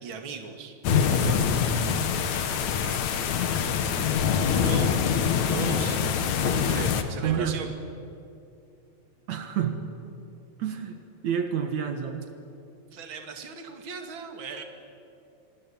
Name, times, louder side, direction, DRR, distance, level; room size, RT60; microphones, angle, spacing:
voice 1, 0.0-0.8 2.8-3.5 4.4-4.9 5.5-6.0 6.5-7.7 12.9-14.6, right 5 dB, 45° right, 5 dB, 2.8 m, -38 dB
sound 1, 0.8-7.0, left 7 dB, 75° left, 2.8 m, -25 dB
voice 2, 0.9-1.7 5.3-5.8 6.5-6.7 7.2-7.6 9.3-9.8 10.6-11.0 11.2-12.3, right 8 dB, 70° right, 6 dB, 2.9 m, -30 dB
26.5 x 25.5 x 8.8 m, 2.6 s
omnidirectional pair, 3.4 m